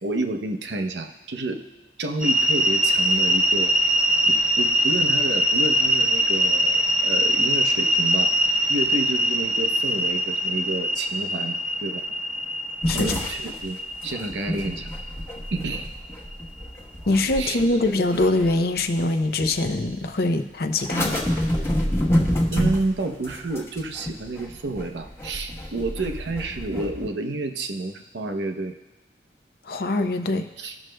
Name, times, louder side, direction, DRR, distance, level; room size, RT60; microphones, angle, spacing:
voice 1, 0.0-1.6 2.0-3.7 4.3-8.3 8.7-12.0 12.9-14.9 15.5-15.9 17.4-17.6 22.5-28.8 30.6-30.8, right 2 dB, 85° right, 6 dB, 0.7 m, -30 dB
sound 1, 2.2-16.3, equal, 5° right, 0.7 m, -23 dB
sound 2, 12.8-19.0 19.4-20.1 20.8-27.1, left 1 dB, 15° left, 1.0 m, -28 dB
voice 2, 17.1-21.2 29.7-30.5, left 2 dB, 60° left, 7 dB, 0.6 m, -23 dB
17.5 x 6.3 x 2.2 m, 1.0 s
head